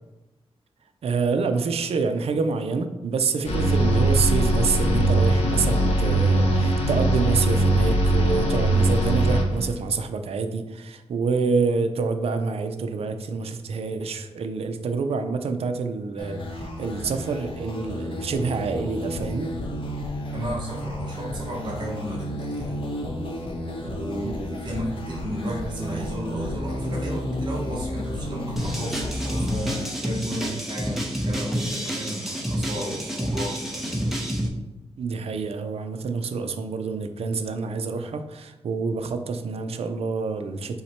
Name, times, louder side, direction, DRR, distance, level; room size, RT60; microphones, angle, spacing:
voice 1, 1.0-19.8 24.2-24.3 30.3-30.5 35.0-40.8, right 4 dB, 70° right, 8 dB, 0.4 m, -27 dB
sound 1, 3.4-9.7, right 1 dB, 90° left, 1.0 m, -21 dB
sound 2, 16.2-29.9, left 1 dB, 55° left, 0.7 m, -32 dB
voice 2, 20.3-22.9 23.7-34.1, equal, 45° right, -3 dB, 0.9 m, -33 dB
sound 3, 28.6-34.5, equal, ahead, 0.7 m, -28 dB
5.6 x 2.1 x 4.2 m, 1.1 s
wide cardioid pair, 110°, 11 cm